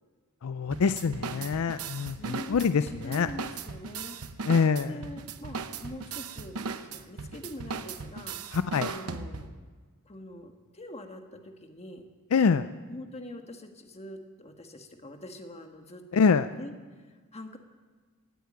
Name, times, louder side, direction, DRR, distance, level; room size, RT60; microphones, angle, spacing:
voice 1, 0.4-3.3 4.5-5.0 8.5-8.9 12.3-12.7 16.1-16.5, left 5 dB, 70° left, 12 dB, 0.4 m, -25 dB
sound 1, 0.7-9.6, right 5 dB, 90° right, 0.8 m, -38 dB
voice 2, 1.1-1.4 2.2-4.2 4.8-8.4 8.9-9.5 10.0-12.0 12.9-16.7 17.1-17.6, left 1 dB, 30° left, 5 dB, 1.4 m, -44 dB
18.0 x 9.5 x 8.6 m, 1.4 s
head